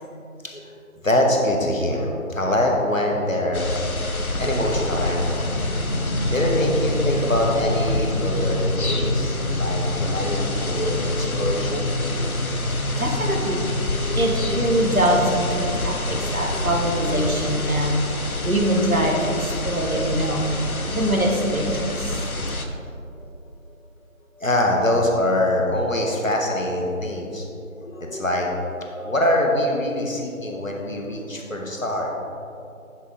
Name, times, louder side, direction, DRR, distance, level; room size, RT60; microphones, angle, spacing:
voice 1, 1.0-3.9 4.4-5.5 5.8-12.3 14.0-14.3 16.2-16.6 22.2-22.4 23.2-23.3 24.4-27.5 27.8-32.1, left 1 dB, 70° left, 0 dB, 1.8 m, -24 dB
sound 1, 3.5-22.7, left 2 dB, 90° left, 1.1 m, -28 dB
sound 2, 4.4-15.5, left 1 dB, 25° left, 1.9 m, -28 dB
voice 2, 13.0-13.7 14.1-18.0 18.4-20.5 20.9-22.3, right 1 dB, 80° right, 0 dB, 1.9 m, -23 dB
10.0 x 7.4 x 3.8 m, 2.7 s
figure-of-eight pair, 175°, 42 cm